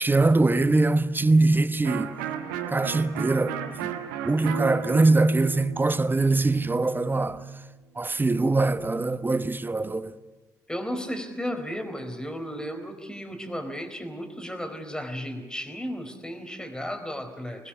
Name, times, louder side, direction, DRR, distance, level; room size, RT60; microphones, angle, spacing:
voice 1, 0.0-2.1 2.7-3.6 4.2-7.4 8.0-10.1, right 2 dB, 20° right, 1.1 m, -22 dB
Electric guitar, 1.8-7.5, right 10 dB, 75° right, 1.4 m, -35 dB
voice 2, 10.7-17.7, equal, 10° left, 4.2 m, -34 dB
26.0 x 20.0 x 7.3 m
figure-of-eight pair, 45°, 10 cm